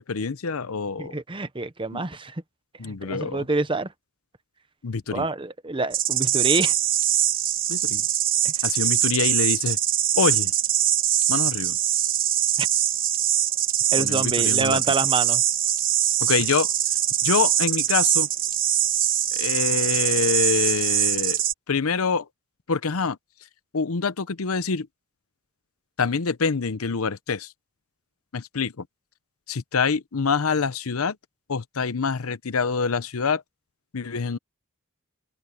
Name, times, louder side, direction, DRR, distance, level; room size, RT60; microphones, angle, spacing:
voice 1, 0.0-1.1 1.9-2.0 2.8-3.5 4.8-5.3 7.7-8.0 8.6-9.8 10.2-10.5 11.3-11.8 14.0-14.8 16.2-16.7 17.2-18.3 19.3-21.4 21.7-22.3 22.7-23.2 23.7-24.9 26.0-27.5 28.3-28.9 29.5-31.2 31.5-33.4 33.9-34.4, left 5 dB, 80° left, 0.8 m, -26 dB
voice 2, 1.0-2.4 2.8-3.9 5.1-6.8 8.4-8.6 12.6-12.7 13.9-15.4, right 3 dB, 25° right, 1.0 m, -27 dB
sound 1, 5.9-21.5, right 11 dB, 40° right, 1.2 m, -23 dB
head